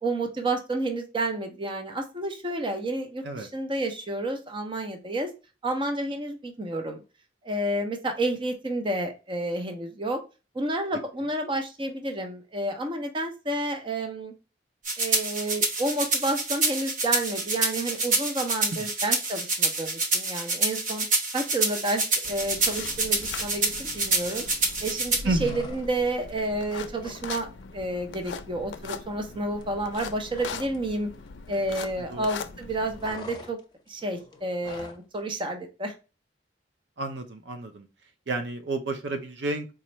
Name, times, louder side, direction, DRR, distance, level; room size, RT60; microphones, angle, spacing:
voice 1, 0.0-5.3 5.6-7.0 7.4-10.2 10.5-14.3 15.0-21.1 21.3-24.5 24.8-31.1 31.5-33.6 33.9-35.9, right 1 dB, 30° right, 5 dB, 0.6 m, -30 dB
sound 1, 14.9-25.2, right 3 dB, 45° right, 0.9 m, -27 dB
sound 2, 22.2-33.1, left 5 dB, 85° left, 0.4 m, -40 dB
voice 2, 25.2-25.6 32.1-32.3 37.0-37.9 38.3-39.7, right 2 dB, 75° right, 7 dB, 0.6 m, -30 dB
sound 3, 25.4-26.2 26.5-27.3 27.6-27.8 28.1-30.9 31.1-32.2 32.5-35.1, left 3 dB, 25° left, 0.6 m, -46 dB
4.2 x 2.4 x 3.0 m, 0.30 s
head